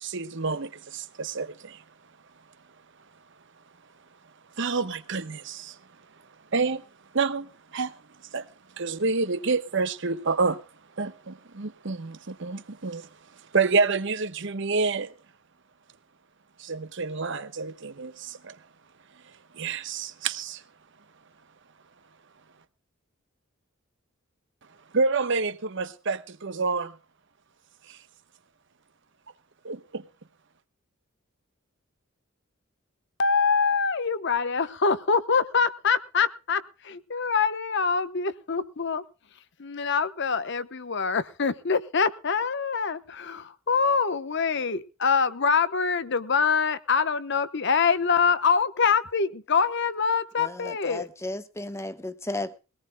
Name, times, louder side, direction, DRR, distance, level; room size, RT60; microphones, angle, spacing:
voice 1, 0.0-1.8 4.6-5.8 6.5-6.8 7.1-7.9 8.3-8.5 8.8-10.6 11.0-13.1 13.5-15.1 16.6-18.5 19.5-20.6 24.9-26.9 27.9-28.0 29.6-30.0, right 4 dB, 60° right, 1.1 m, -28 dB
voice 2, 33.2-39.0 39.6-51.1, left 5 dB, 60° left, 0.9 m, -25 dB
voice 3, 50.4-52.6, left 1 dB, 15° left, 1.0 m, -34 dB
21.5 x 18.0 x 2.2 m
head